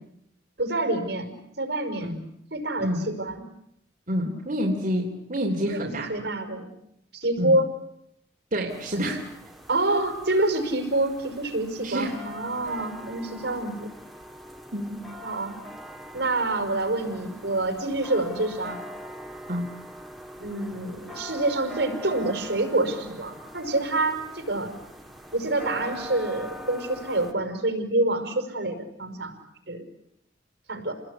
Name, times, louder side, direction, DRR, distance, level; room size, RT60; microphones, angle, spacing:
voice 1, 0.6-2.1 2.5-3.4 5.7-6.7 7.1-7.7 9.7-13.7 15.2-15.6 16.1-18.8 20.4-24.8 25.3-29.3 29.7-29.8 30.7-30.9, right 2 dB, 65° right, 6 dB, 5.5 m, -27 dB
voice 2, 2.8-3.1 4.1-6.1 7.4-7.6 8.5-9.3 11.8-12.2 14.7-15.0 19.5-19.7, equal, 45° right, -1 dB, 3.2 m, -28 dB
sound 1, 8.7-27.3, equal, ahead, 2.6 m, -42 dB
29.5 x 20.5 x 9.9 m, 0.76 s
head